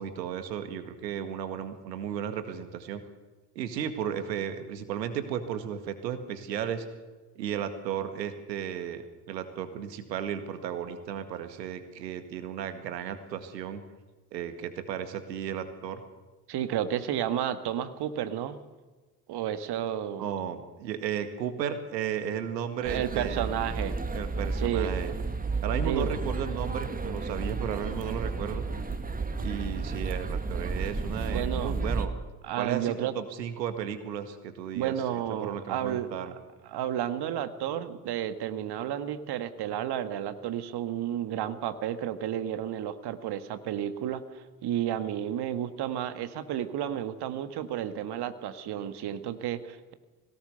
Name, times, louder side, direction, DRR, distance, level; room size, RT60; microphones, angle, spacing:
voice 1, 0.0-3.0 3.6-6.9 7.4-13.8 14.3-16.0 20.2-23.4 24.1-25.1 25.6-28.6 29.4-32.1 32.6-36.3, right 9 dB, 80° right, 9 dB, 2.0 m, -34 dB
voice 2, 16.5-18.6 19.3-20.2 22.8-24.0 24.6-24.9 25.8-26.1 31.3-31.8 32.4-33.1 34.7-36.1 36.6-49.9, right 10 dB, 50° right, 11 dB, 1.7 m, -32 dB
sound 1, 22.8-32.1, right 4 dB, 15° right, 1.9 m, -32 dB
21.0 x 18.0 x 6.9 m, 1.3 s
figure-of-eight pair, 55°, 50 cm